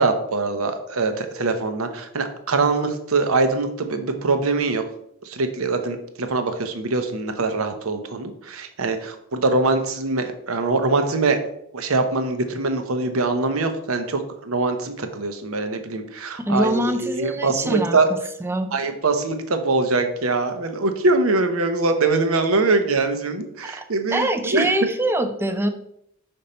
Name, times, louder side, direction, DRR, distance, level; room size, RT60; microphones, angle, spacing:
voice 1, 0.0-4.8 5.2-11.4 11.7-18.1 18.7-24.7, right 3 dB, 70° right, 7 dB, 0.8 m, -23 dB
voice 2, 16.4-18.0 18.4-18.7 23.6-23.8 24.1-25.7, right 1 dB, 10° right, 8 dB, 0.4 m, -23 dB
5.5 x 5.2 x 4.3 m, 0.76 s
head